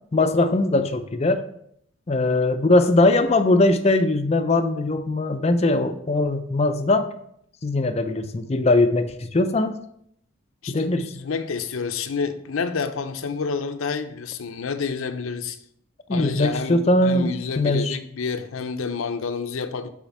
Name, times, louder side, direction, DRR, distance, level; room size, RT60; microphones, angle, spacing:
voice 1, 0.1-1.4 2.1-7.1 7.6-9.7 10.7-11.1 16.1-17.3 17.6-18.0, left 2 dB, 30° left, 0.4 m, -20 dB
voice 2, 10.6-15.6 16.1-19.9, left 5 dB, 80° left, 0.6 m, -29 dB
5.7 x 4.3 x 4.3 m
head